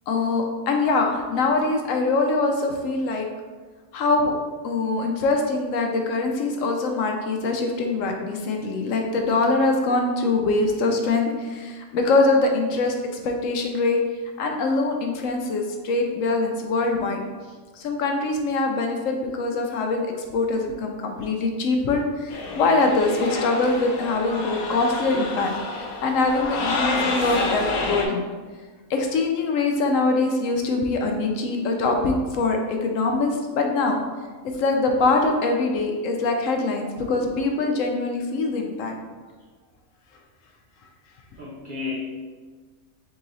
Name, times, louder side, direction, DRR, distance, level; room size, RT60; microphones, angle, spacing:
voice 1, 0.1-3.3 3.9-4.3 4.6-14.0 14.4-17.2 17.7-28.2 28.9-34.0 34.4-38.9, left 3 dB, 70° left, 2 dB, 0.9 m, -23 dB
sound 1, 22.3-28.1, left 2 dB, 90° left, 1.2 m, -28 dB
voice 2, 41.4-41.9, left 5 dB, 65° right, -4 dB, 0.5 m, -33 dB
3.8 x 2.9 x 3.8 m, 1.4 s
omnidirectional pair, 1.5 m